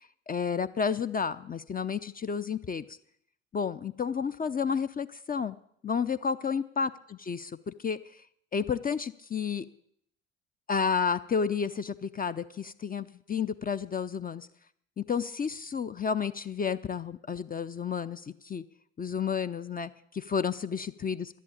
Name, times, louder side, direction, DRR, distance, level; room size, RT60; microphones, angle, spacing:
voice 1, 0.0-3.0 3.5-5.6 5.8-8.2 8.5-9.7 10.7-14.5 15.0-18.6 19.0-21.4, left 6 dB, 25° left, 11 dB, 0.6 m, -31 dB
11.5 x 11.0 x 8.6 m, 0.70 s
figure-of-eight pair, 55°, 37 cm